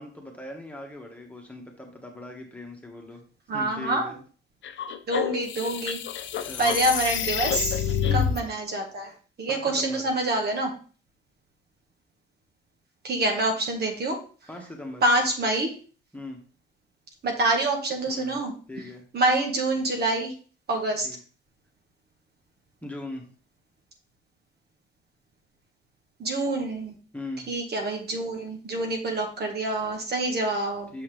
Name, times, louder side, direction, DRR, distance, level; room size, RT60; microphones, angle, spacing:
voice 1, 0.0-3.2 3.5-4.2 6.5-6.8 8.0-8.4 9.5-10.0 14.5-15.0 16.1-16.4 18.1-18.4 18.7-19.0 21.0-21.2 22.8-23.3 27.1-27.5 30.9-31.0, left 1 dB, 5° left, 1 dB, 1.7 m, -39 dB
voice 2, 3.5-4.1 5.1-6.0 6.6-9.1 9.4-10.7 13.0-14.2 15.0-15.7 17.2-18.5 19.1-20.3 20.7-21.1 26.2-26.9 27.5-30.9, right 2 dB, 55° right, 2 dB, 1.7 m, -26 dB
sound 1, 4.6-8.4, left 9 dB, 70° left, 0.6 m, -28 dB
6.7 x 5.6 x 3.3 m, 0.40 s
cardioid pair, 90°, 20 cm